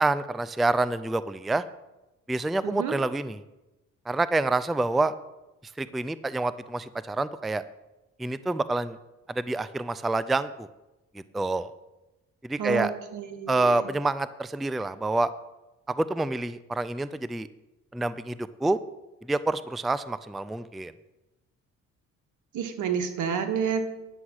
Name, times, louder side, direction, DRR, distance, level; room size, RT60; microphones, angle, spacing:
voice 1, 0.0-1.6 2.3-3.4 4.1-5.1 5.8-7.6 8.2-9.0 9.3-10.7 11.3-11.7 12.4-12.9 13.5-15.3 15.9-17.5 17.9-18.8 19.3-20.9, right 2 dB, ahead, 15 dB, 0.3 m, -27 dB
voice 2, 2.6-2.9 12.6-13.8 22.5-23.8, right 7 dB, 80° right, 8 dB, 1.3 m, -29 dB
9.8 x 7.0 x 6.3 m, 1.0 s
cardioid pair, 90°, 30 cm